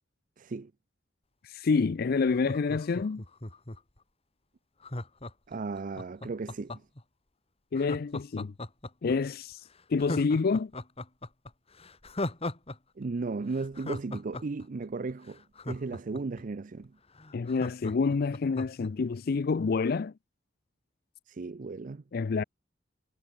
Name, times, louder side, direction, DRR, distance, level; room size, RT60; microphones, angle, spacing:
voice 1, 0.4-0.7 5.5-6.8 13.0-16.9 21.3-22.0, right 3 dB, 45° right, 0.5 m, -35 dB
voice 2, 1.4-3.2 7.7-8.5 9.0-9.6 9.9-10.7 17.3-20.1 22.1-22.4, left 4 dB, 55° left, 0.4 m, -28 dB
Laughter, 2.3-4.0 4.8-7.0 7.8-9.2 9.5-9.6 10.0-12.8 13.0-13.1 13.5-16.4 16.8-16.9 17.2-18.9 19.3-19.4, left 1 dB, 35° left, 2.8 m, -38 dB
head